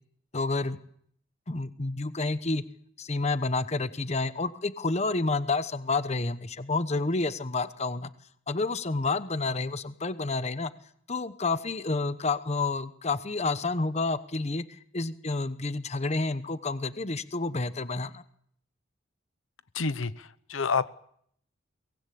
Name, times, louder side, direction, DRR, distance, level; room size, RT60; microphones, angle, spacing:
voice 1, 0.3-0.8 1.5-2.6 3.0-8.1 8.5-10.7 11.1-18.2, left 3 dB, 35° left, 1.0 m, -29 dB
voice 2, 19.7-20.9, left 5 dB, 80° left, 0.9 m, -29 dB
23.5 x 19.5 x 8.6 m
head